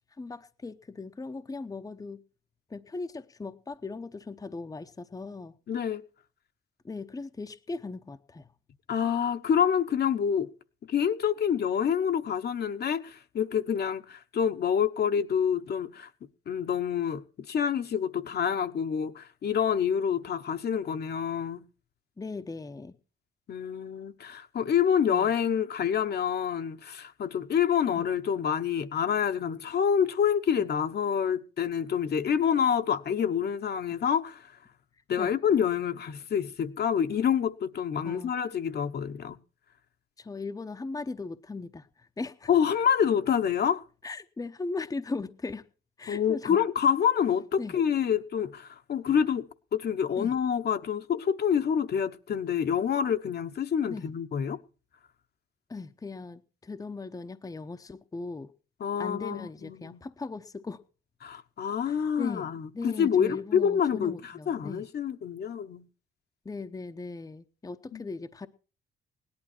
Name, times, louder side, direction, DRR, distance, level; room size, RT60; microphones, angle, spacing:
voice 1, 0.2-2.2 2.7-5.5 6.8-8.5 22.2-22.9 25.1-25.3 27.9-28.0 35.2-35.3 38.0-38.3 40.2-42.5 44.0-45.7 46.0-46.6 47.6-47.8 50.2-50.3 53.9-54.1 55.7-58.5 59.0-60.8 61.9-62.5 62.7-64.8 66.4-68.5, left 3 dB, 20° left, 0.8 m, -38 dB
voice 2, 5.7-6.0 8.9-10.5 10.9-16.1 16.5-21.7 23.5-34.5 35.1-39.4 42.5-43.8 46.1-49.5 49.7-54.6 58.8-60.0 61.2-65.9 67.9-68.1, left 8 dB, 55° left, 1.0 m, -27 dB
17.5 x 11.5 x 4.4 m
cardioid pair, 90°, 20 cm